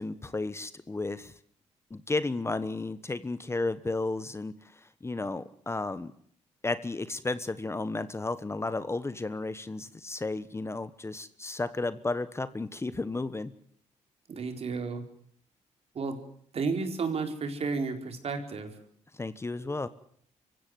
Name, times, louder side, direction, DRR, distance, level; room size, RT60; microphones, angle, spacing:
voice 1, 0.0-1.3 1.9-6.1 6.6-13.5 19.1-19.9, left 3 dB, 20° left, 14 dB, 1.2 m, -33 dB
voice 2, 14.3-15.0 15.9-16.2 16.5-18.8, right 4 dB, 55° right, 5 dB, 4.4 m, -32 dB
25.0 x 16.0 x 9.4 m, 0.64 s
cardioid pair, 85°, 12 cm